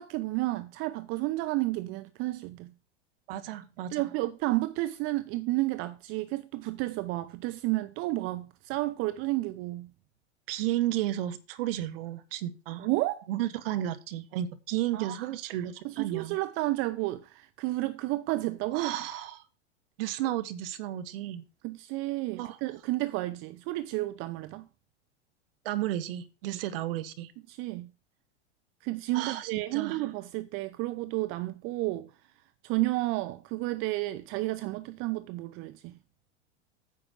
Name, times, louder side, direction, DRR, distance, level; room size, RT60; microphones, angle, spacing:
voice 1, 0.0-2.7 3.9-9.9 12.8-13.3 14.9-15.3 15.8-18.9 21.6-24.6 26.5-26.6 27.5-27.9 28.8-32.1 32.6-36.0, right 19 dB, 40° right, 0.7 m, -31 dB
voice 2, 3.3-4.1 10.5-12.9 13.3-16.4 18.7-19.4 20.0-21.4 22.4-22.6 25.6-27.3 29.1-30.1, right 13 dB, 55° right, 1.5 m, -33 dB
9.5 x 6.9 x 6.3 m
hypercardioid pair, 95°, 34 cm